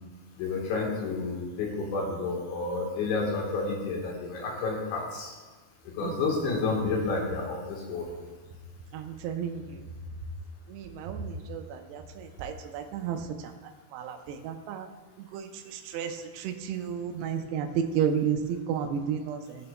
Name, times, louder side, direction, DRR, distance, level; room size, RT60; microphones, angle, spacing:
voice 1, 0.4-5.3 6.0-8.1, left 3 dB, 75° left, -1 dB, 3.6 m, -30 dB
voice 2, 8.9-9.8 10.7-13.3 13.9-14.9 15.3-19.7, right 7 dB, 85° right, 4 dB, 2.3 m, -32 dB
16.0 x 6.8 x 2.2 m, 1.4 s
omnidirectional pair, 5.3 m